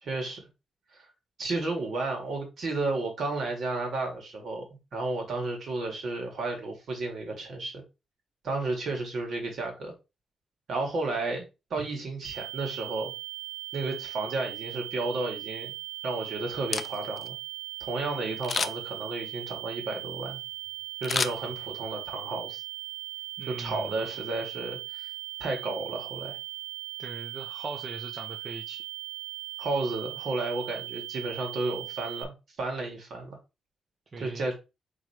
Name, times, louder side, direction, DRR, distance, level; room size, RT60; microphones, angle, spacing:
voice 1, 0.0-0.4 0.9-1.1 1.4-7.8 8.4-9.9 10.7-13.1 13.7-15.7 16.0-17.4 17.8-20.4 21.0-22.6 23.5-25.1 25.4-26.4 29.6-33.4 34.2-34.5, right 3 dB, 60° right, 2.0 m, -32 dB
sound 1, 12.2-32.2, right 19 dB, 80° right, 0.6 m, -39 dB
Camera, 16.5-17.3 18.4-19.0 21.0-22.0 22.4-22.5, left 5 dB, 35° left, 0.3 m, -31 dB
voice 2, 23.4-23.9 27.0-28.8 34.1-34.5, right 3 dB, 30° right, 0.7 m, -40 dB
3.7 x 3.0 x 4.5 m
cardioid pair, 135°, 0 cm